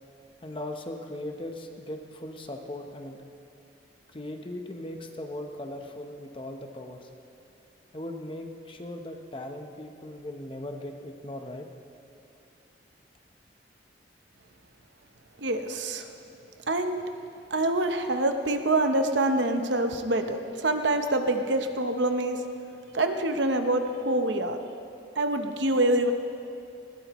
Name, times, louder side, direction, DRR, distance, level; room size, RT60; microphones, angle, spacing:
voice 1, 0.4-3.2 4.1-7.1 7.9-11.7, left 1 dB, 30° left, 4 dB, 1.0 m, -38 dB
voice 2, 15.4-16.0 16.7-17.0 17.5-22.4 22.9-24.6 25.2-26.1, right 2 dB, 75° right, 6 dB, 1.0 m, -26 dB
19.5 x 17.0 x 3.1 m, 2.6 s
head